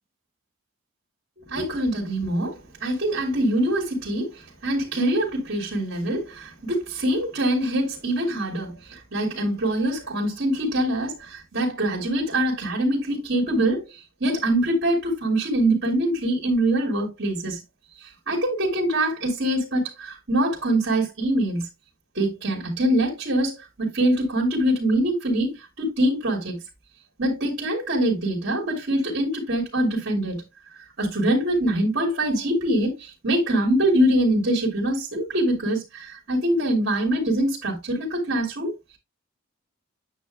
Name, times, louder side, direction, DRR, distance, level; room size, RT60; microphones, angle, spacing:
voice 1, 1.5-17.6 18.0-21.7 22.1-26.6 27.2-30.4 31.0-38.7, right 1 dB, 60° right, 2.4 m, -24 dB
9.1 x 7.0 x 2.2 m
head